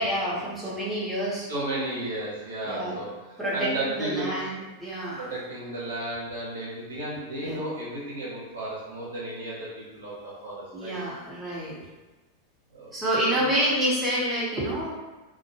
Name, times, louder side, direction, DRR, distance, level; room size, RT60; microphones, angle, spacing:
voice 1, 0.0-1.5 2.6-3.0 3.4-5.2 7.4-7.6 10.7-11.8 12.9-14.9, equal, 10° right, -8 dB, 0.8 m, -28 dB
voice 2, 1.5-4.5 5.2-11.0 12.7-12.9 13.3-13.7, right 1 dB, 70° right, -7 dB, 0.9 m, -34 dB
2.1 x 2.0 x 3.1 m, 1.2 s
figure-of-eight pair, 90°, 0 cm